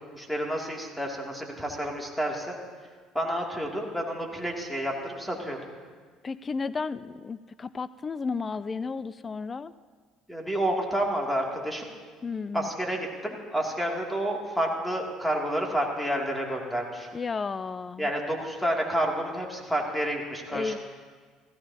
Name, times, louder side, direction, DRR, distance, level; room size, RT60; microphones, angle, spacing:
voice 1, 0.1-2.5 3.1-5.6 10.3-11.9 12.5-17.1 18.0-20.8, right 1 dB, 5° left, 0 dB, 2.6 m, -29 dB
voice 2, 6.2-9.7 12.2-12.7 17.1-18.1 20.5-20.8, left 4 dB, 30° left, 16 dB, 0.3 m, -33 dB
16.5 x 14.5 x 2.8 m, 1.6 s
supercardioid pair, 80°, 0 cm